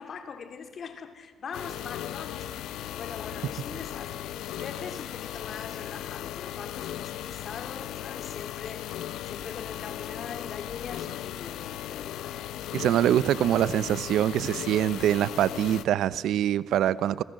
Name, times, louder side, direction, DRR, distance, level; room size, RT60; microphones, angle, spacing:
voice 1, 0.0-12.4 12.7-12.9, left 6 dB, 55° left, 2.9 m, -42 dB
sound 1, 1.5-15.8, left 12 dB, 85° left, 0.8 m, -37 dB
voice 2, 12.7-17.2, right 11 dB, 80° right, 0.7 m, -24 dB
28.5 x 22.5 x 7.6 m
cardioid pair, 90°, 0 cm